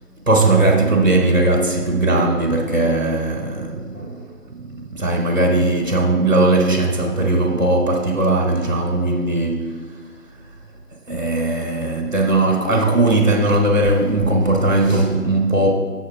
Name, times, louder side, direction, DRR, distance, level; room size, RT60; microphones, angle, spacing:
voice 1, 0.3-4.3 4.7-9.8 11.1-15.7, right 2 dB, 60° right, 1.3 m, -18 dB
7.9 x 6.4 x 5.0 m
figure-of-eight pair, 175°, 47 cm